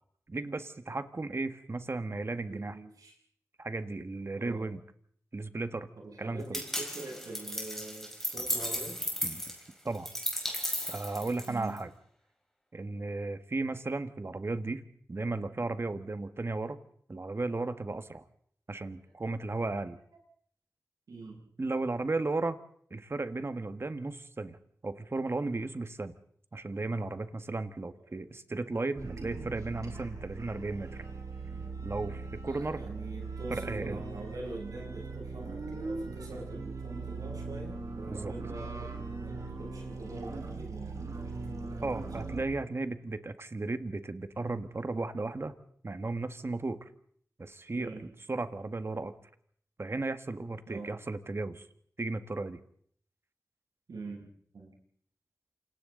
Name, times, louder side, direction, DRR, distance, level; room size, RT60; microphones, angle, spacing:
voice 1, 0.3-2.8 3.6-4.8 5.3-5.9 6.2-6.6 9.2-9.4 9.8-10.1 10.9-11.9 12.7-14.8 15.1-16.8 17.1-18.2 18.7-20.0 21.6-22.6 22.9-24.6 24.8-26.1 26.5-31.0 31.8-32.8 33.5-34.0 38.1-38.3 41.8-45.5 45.8-46.9 47.4-49.1 49.8-51.7 52.0-52.6, right 3 dB, 45° right, 10 dB, 1.6 m, -35 dB
voice 2, 2.5-3.1 4.4-4.7 6.0-9.0 11.5-11.8 19.0-19.1 21.1-21.5 32.5-42.3 47.7-48.0 50.7-51.0 53.9-54.7, right 3 dB, 85° right, -1 dB, 7.9 m, -44 dB
sound 1, 6.5-11.8, equal, 5° left, 5.4 m, -35 dB
sound 2, 29.0-42.4, right 3 dB, 65° right, 4.4 m, -40 dB
28.0 x 26.0 x 4.0 m, 0.62 s
cardioid pair, 50°, 6 cm